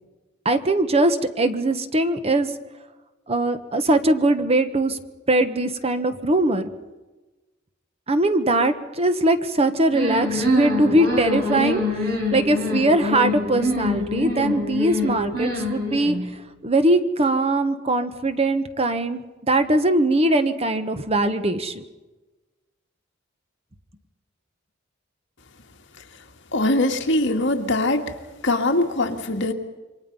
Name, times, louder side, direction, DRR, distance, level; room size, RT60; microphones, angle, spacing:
voice 1, 0.4-2.5 3.3-5.0 5.3-6.7 8.1-11.8 12.3-16.2 16.6-21.8, right 1 dB, 30° right, 9 dB, 1.2 m, -21 dB
sound 1, 9.9-16.3, left 1 dB, 50° right, 7.6 m, -25 dB
voice 2, 26.5-28.1 28.4-29.5, left 2 dB, 65° left, 4 dB, 2.1 m, -22 dB
27.5 x 24.0 x 5.5 m, 1.2 s
head